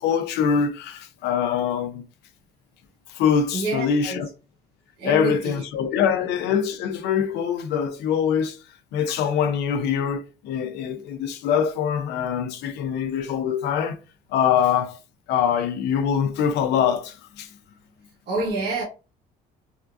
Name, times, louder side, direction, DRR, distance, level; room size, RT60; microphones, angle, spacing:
voice 1, 0.0-2.0 3.1-4.3 5.0-8.6 8.9-14.0 14.3-15.0 15.3-17.5, left 7 dB, 85° left, 0.6 m, -23 dB
voice 2, 3.5-4.3 5.0-5.6 18.3-18.8, right 2 dB, 80° right, 1.1 m, -27 dB
3.7 x 2.3 x 2.4 m
cardioid pair, 110°, 17 cm